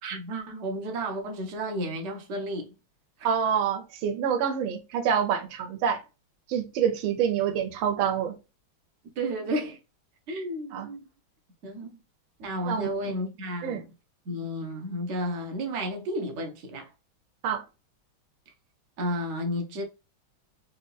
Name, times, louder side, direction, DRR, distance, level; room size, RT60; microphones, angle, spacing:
voice 1, 0.0-2.8 9.2-9.8 10.3-11.0 11.6-12.0 12.4-13.9 14.2-16.9 19.0-19.8, equal, 60° right, 0.7 m, -32 dB
voice 2, 3.2-6.0 6.5-8.4 10.7-10.9 12.7-13.2 13.6-13.8 17.4-17.6, right 8 dB, 75° right, 1.4 m, -27 dB
3.7 x 2.7 x 2.2 m
omnidirectional pair, 2.3 m